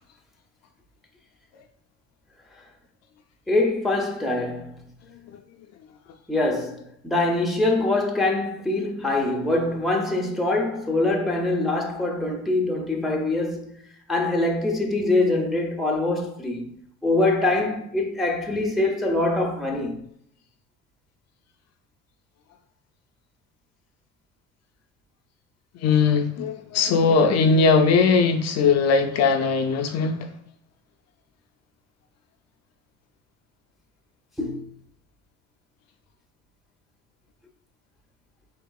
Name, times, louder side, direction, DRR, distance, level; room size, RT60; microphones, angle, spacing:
voice 1, 3.5-4.8 6.3-13.8 14.1-16.8 17.0-20.1 34.4-34.7, left 2 dB, ahead, 0.6 m, -24 dB
voice 2, 25.7-30.3, left 4 dB, 55° left, 0.5 m, -20 dB
3.9 x 3.6 x 2.3 m
cardioid pair, 110°, 32 cm